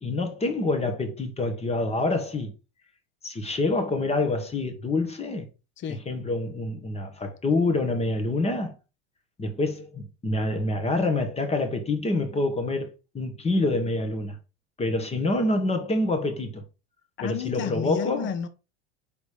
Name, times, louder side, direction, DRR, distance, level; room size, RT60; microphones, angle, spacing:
voice 1, 0.0-2.5 3.2-5.5 6.1-8.8 9.4-14.4 14.8-16.6 17.2-18.3, left 2 dB, 20° left, 1.6 m, -26 dB
voice 2, 17.2-18.5, left 8 dB, 35° left, 0.8 m, -31 dB
5.2 x 4.0 x 5.0 m
hypercardioid pair, 105°, 33 cm